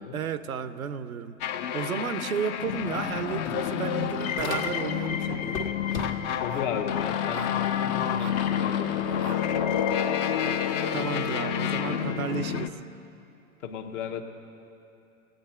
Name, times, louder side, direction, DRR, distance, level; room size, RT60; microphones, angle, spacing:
voice 1, 0.1-5.7 10.9-12.8, right 7 dB, 85° right, 13 dB, 0.7 m, -33 dB
sound 1, 1.4-12.7, left 9 dB, 30° left, 0.4 m, -28 dB
sound 2, 2.4-2.5 2.8-5.1 5.4-6.5, left 3 dB, 80° left, 1.7 m, -38 dB
sound 3, 4.4-6.1 6.5-6.7 7.3-7.6 8.2-8.4 9.2-9.4, right 15 dB, 45° right, 0.5 m, -44 dB
voice 2, 6.4-9.3 13.6-14.2, left 7 dB, 60° left, 4 dB, 1.2 m, -35 dB
17.5 x 8.9 x 4.3 m, 2.7 s
hypercardioid pair, 105°, 41 cm